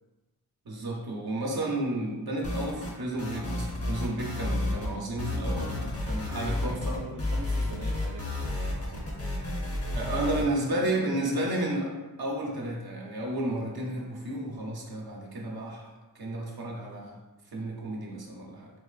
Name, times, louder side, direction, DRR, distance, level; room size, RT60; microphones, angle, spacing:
voice 1, 0.7-5.8 6.1-7.0 9.4-9.5 9.9-11.9 12.2-15.9 16.1-17.1 17.5-18.7, right 1 dB, 85° right, -1 dB, 0.8 m, -32 dB
sound 1, 2.4-2.9 3.2-4.9 5.2-10.4, left 1 dB, 40° left, 0.8 m, -31 dB
voice 2, 5.3-5.7 6.9-9.1 10.1-11.5 18.5-18.6, right 3 dB, 60° right, 0 dB, 0.4 m, -43 dB
4.1 x 3.1 x 2.4 m, 1.1 s
wide cardioid pair, 105°, 36 cm